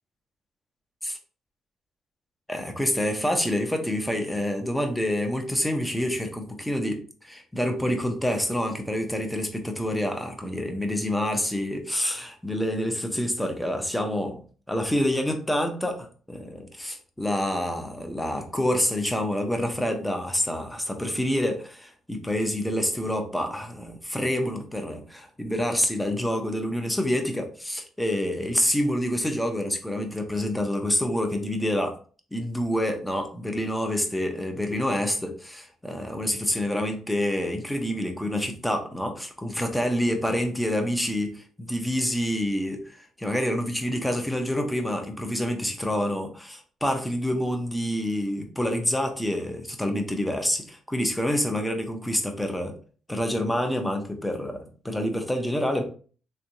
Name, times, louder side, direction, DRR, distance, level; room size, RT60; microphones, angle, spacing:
voice 1, 2.5-14.4 14.7-32.0 32.3-52.7 53.1-55.8, left 1 dB, 5° left, 4 dB, 0.8 m, -27 dB
3.5 x 3.3 x 2.7 m, 0.40 s
cardioid pair, 90°, 0 cm